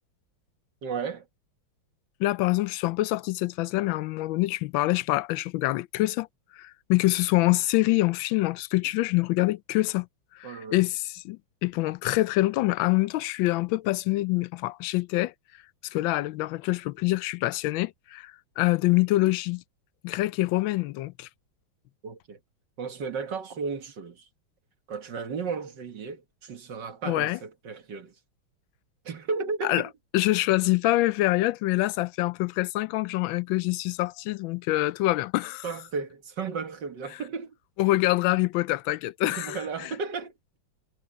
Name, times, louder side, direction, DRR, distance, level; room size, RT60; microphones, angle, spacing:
voice 1, 0.8-1.3 10.4-10.9 22.0-22.4 22.8-24.3 24.9-28.1 29.0-29.9 35.6-37.6 39.2-40.6, right 5 dB, 60° right, 2.1 m, -34 dB
voice 2, 2.2-6.3 6.5-10.1 10.3-15.3 15.9-19.6 20.0-21.3 27.1-27.4 29.6-29.8 30.1-35.6 37.8-39.9, left 18 dB, 75° left, 1.3 m, -25 dB
omnidirectional pair, 2.3 m